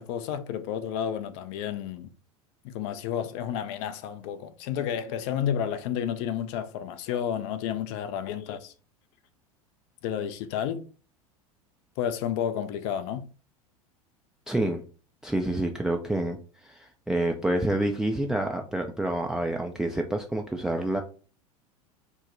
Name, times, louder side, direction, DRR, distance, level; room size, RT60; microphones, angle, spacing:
voice 1, 0.0-2.1 2.6-8.7 10.0-10.8 12.0-13.3, left 9 dB, 50° left, 0.5 m, -31 dB
voice 2, 14.5-14.8 15.2-21.0, right 1 dB, 5° right, 0.4 m, -28 dB
4.5 x 2.1 x 3.8 m
figure-of-eight pair, 80°, 19 cm